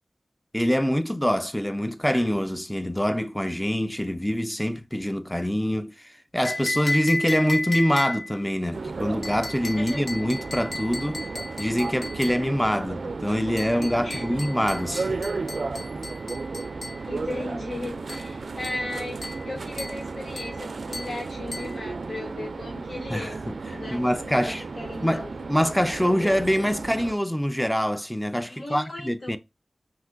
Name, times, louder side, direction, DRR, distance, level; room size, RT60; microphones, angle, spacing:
voice 1, 0.5-11.2 11.6-15.3 23.1-23.6 23.9-24.7 25.0-29.4, equal, 5° left, 0.4 m, -25 dB
sound 1, 6.4-8.4 9.2-12.5 13.6-17.0 18.1-18.3 18.6-18.9 19.2-19.5 19.8-20.0 20.4-20.6 20.9-21.2 21.5-21.8, left 2 dB, 65° left, 1.1 m, -33 dB
sound 2, 8.7-27.2, right 3 dB, 80° right, 0.3 m, -34 dB
voice 2, 17.1-25.3 28.5-29.4, left 2 dB, 85° left, 1.8 m, -36 dB
5.9 x 2.9 x 2.4 m
wide cardioid pair, 65°, 0 cm